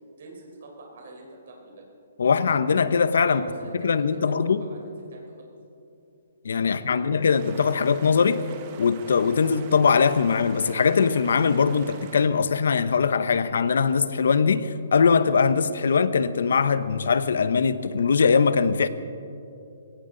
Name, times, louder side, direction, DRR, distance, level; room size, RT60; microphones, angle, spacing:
voice 1, 0.2-1.9 3.2-5.5 6.6-7.1, right 2 dB, 55° right, -1 dB, 4.0 m, -45 dB
voice 2, 2.2-3.4 3.8-4.6 6.4-8.4 8.8-18.9, left 5 dB, 70° left, 13 dB, 0.8 m, -21 dB
sound 1, 7.2-12.3, right 6 dB, 25° right, 1.0 m, -46 dB
19.5 x 17.5 x 3.9 m, 2.7 s
hypercardioid pair, 175°, 0 cm